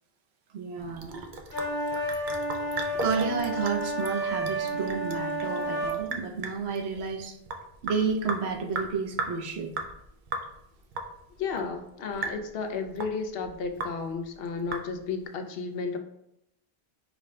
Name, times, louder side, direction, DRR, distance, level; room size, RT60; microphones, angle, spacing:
voice 1, 0.5-1.2 2.9-7.4 7.8-9.7, right 5 dB, 80° right, 3 dB, 0.9 m, -31 dB
Sink (filling or washing) / Drip, 0.8-15.2, right 3 dB, 55° right, 0.6 m, -38 dB
sound 1, 1.5-6.0, right 1 dB, 50° left, 1.5 m, -31 dB
voice 2, 11.4-16.0, left 5 dB, 70° left, 6 dB, 0.7 m, -33 dB
5.0 x 2.1 x 3.6 m, 0.79 s
omnidirectional pair, 1.1 m